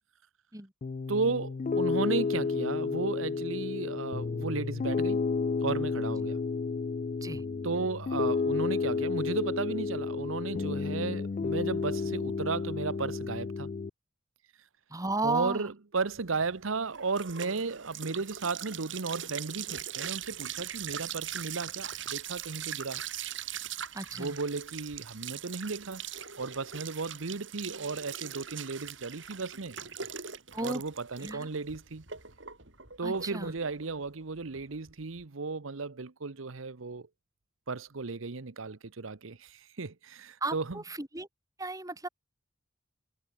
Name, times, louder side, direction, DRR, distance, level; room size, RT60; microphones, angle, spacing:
Piano, 0.8-13.9, left 4 dB, 35° left, 0.3 m, -31 dB
voice 1, 1.1-5.3 5.6-6.4 7.6-13.7 15.2-23.0 24.1-26.0 26.4-29.8 30.6-32.0 33.0-37.1 37.7-40.8, right 4 dB, 85° right, 1.0 m, -34 dB
voice 2, 14.9-15.7 23.9-24.4 30.5-30.8 31.2-31.5 33.0-33.5 40.4-41.3 41.6-42.1, right 2 dB, 15° right, 3.3 m, -34 dB
sound 1, 16.1-35.2, right 9 dB, 65° right, 5.9 m, -41 dB
head